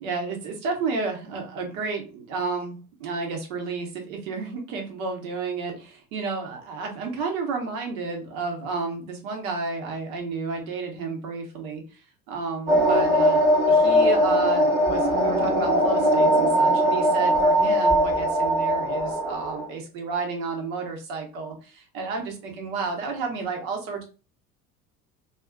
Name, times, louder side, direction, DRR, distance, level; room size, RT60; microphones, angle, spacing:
voice 1, 0.0-12.0 12.3-24.0, right 4 dB, 60° right, 2 dB, 1.0 m, -31 dB
sound 1, 12.7-19.7, equal, 20° right, 1.2 m, -20 dB
2.6 x 2.5 x 2.3 m, 0.35 s
figure-of-eight pair, 65°, 47 cm